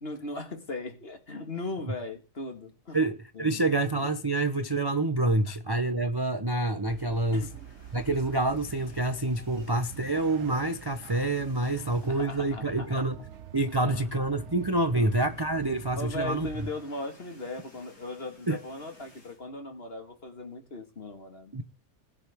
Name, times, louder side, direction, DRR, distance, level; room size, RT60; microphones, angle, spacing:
voice 1, 0.0-3.0 3.4-3.6 7.3-7.6 11.8-13.1 13.8-14.1 14.9-15.1 16.0-21.6, left 2 dB, 40° left, 1.9 m, -38 dB
voice 2, 2.9-7.5 7.9-13.2 13.5-16.5 18.5-18.6 21.5-21.6, right 2 dB, 20° right, 0.6 m, -27 dB
sound 1, 6.7-12.4 12.8-13.0 13.3-13.4 14.4-19.4, left 1 dB, 80° left, 5.5 m, -57 dB
sound 2, 6.9-16.7, right 9 dB, 55° right, 1.0 m, -46 dB
20.5 x 9.8 x 3.6 m
omnidirectional pair, 1.7 m